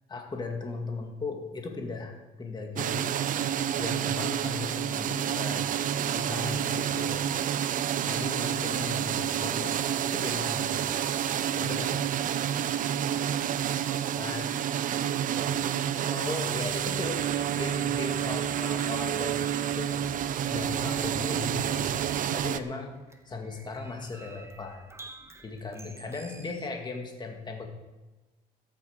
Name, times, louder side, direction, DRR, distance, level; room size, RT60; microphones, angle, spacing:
voice 1, 0.1-3.2 3.8-5.7 6.1-7.2 8.1-10.8 11.6-12.0 14.2-14.5 16.1-22.9 23.3-24.8 25.4-27.7, left 3 dB, 25° left, 2 dB, 2.2 m, -37 dB
sound 1, 2.8-22.6, right 9 dB, 50° right, 0.7 m, -29 dB
voice 2, 6.6-7.0 7.9-8.4 12.8-13.6 13.9-14.2 15.0-15.8 23.6-24.0, right 9 dB, 85° right, 9 dB, 1.1 m, -47 dB
sound 2, 20.1-26.7, right 2 dB, 15° right, 1.2 m, -51 dB
13.0 x 8.9 x 6.5 m, 1.1 s
cardioid pair, 110°, 17 cm